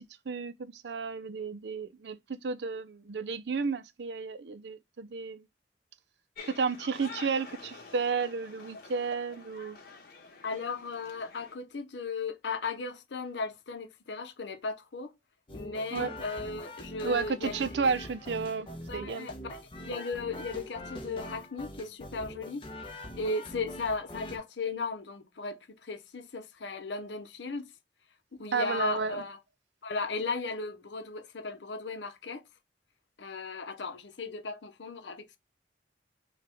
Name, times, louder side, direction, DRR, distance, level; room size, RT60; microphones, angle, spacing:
voice 1, 0.3-5.4 6.5-9.8 15.9-16.1 17.0-19.3 28.5-29.2, right 5 dB, 75° right, 0.5 m, -32 dB
sound 1, 6.3-11.5, left 4 dB, 55° left, 1.1 m, -48 dB
voice 2, 10.4-15.1 15.5-17.6 18.9-22.9 23.2-27.7 28.4-29.4 29.8-32.4 33.2-35.4, left 3 dB, 85° left, 0.7 m, -36 dB
sound 2, 15.5-24.4, equal, 30° left, 0.9 m, -43 dB
5.8 x 2.4 x 3.4 m
head